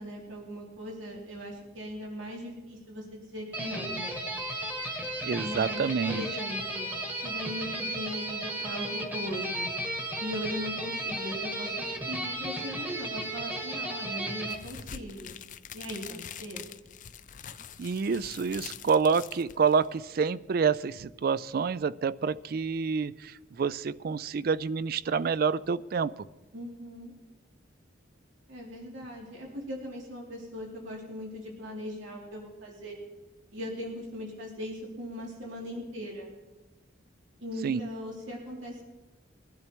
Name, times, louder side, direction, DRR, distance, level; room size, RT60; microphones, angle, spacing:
voice 1, 0.0-4.2 5.4-6.9 7.2-9.7 10.2-15.4 15.7-16.7 26.5-27.1 28.5-33.0 33.5-36.3 37.4-38.8, equal, 80° right, -2 dB, 2.8 m, -39 dB
sound 1, 3.5-14.5, right 1 dB, 10° right, 1.4 m, -34 dB
voice 2, 5.2-6.3 17.8-26.1 37.6-37.8, right 5 dB, 50° right, 18 dB, 0.4 m, -28 dB
sound 2, 14.5-20.0, left 8 dB, 40° left, 0.5 m, -44 dB
22.0 x 12.0 x 3.0 m, 1.1 s
head